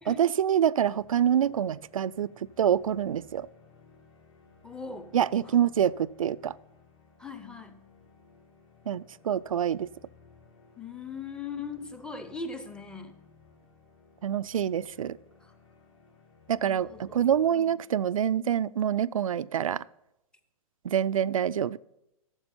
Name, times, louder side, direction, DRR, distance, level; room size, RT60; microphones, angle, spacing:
voice 1, 0.1-2.3 2.6-3.5 5.1-6.5 8.9-9.9 14.2-15.2 16.5-19.8 20.8-21.8, right 9 dB, 70° right, 0.4 m, -26 dB
sound 1, 0.9-17.5, left 5 dB, 55° left, 2.9 m, -58 dB
voice 2, 4.6-5.1 5.4-5.6 7.2-7.8 10.8-13.2 15.4-15.5 16.6-17.2 17.5-17.8, left 4 dB, 5° left, 0.7 m, -40 dB
13.5 x 7.2 x 4.2 m
figure-of-eight pair, 115°, 18 cm